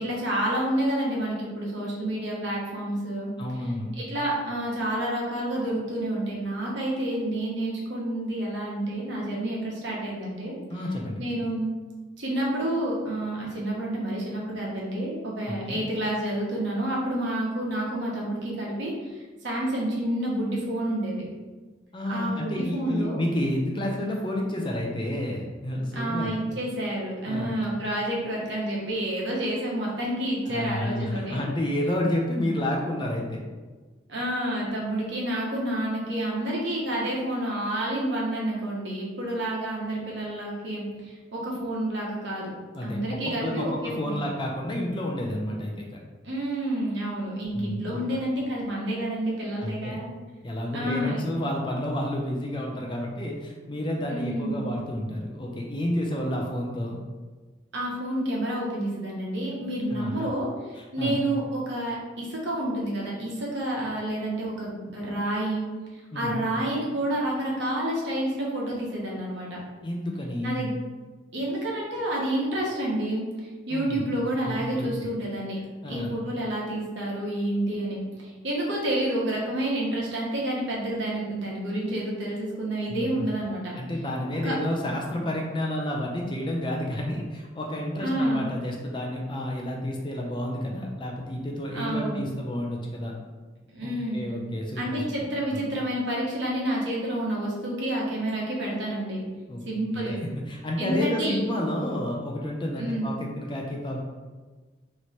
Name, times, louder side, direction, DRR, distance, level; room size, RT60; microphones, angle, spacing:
voice 1, 0.0-3.3 4.0-10.6 11.2-11.7 12.2-21.2 22.1-23.2 25.9-31.4 34.1-42.5 42.8-44.2 46.2-50.1 50.7-51.3 54.1-54.8 57.7-65.7 65.9-69.6 70.4-70.7 71.3-75.6 75.8-83.7 84.4-84.5 88.0-88.5 91.7-92.2 93.7-94.3 94.8-99.2 99.6-100.1 100.8-101.4 102.8-103.2, right 1 dB, 65° right, -4 dB, 1.2 m, -29 dB
voice 2, 3.4-3.9 10.7-11.2 15.5-15.8 21.9-26.3 27.2-27.6 30.5-33.4 42.7-43.0 43.2-45.8 47.5-48.0 49.6-50.0 50.4-57.0 59.9-60.1 60.8-61.2 66.1-66.4 69.8-70.6 73.7-74.0 74.4-74.9 75.8-76.1 82.9-83.1 83.8-93.1 93.8-95.0 95.5-95.6 99.5-99.6 99.9-104.0, left 1 dB, 25° left, -1 dB, 0.5 m, -30 dB
3.1 x 3.1 x 4.2 m, 1.3 s
head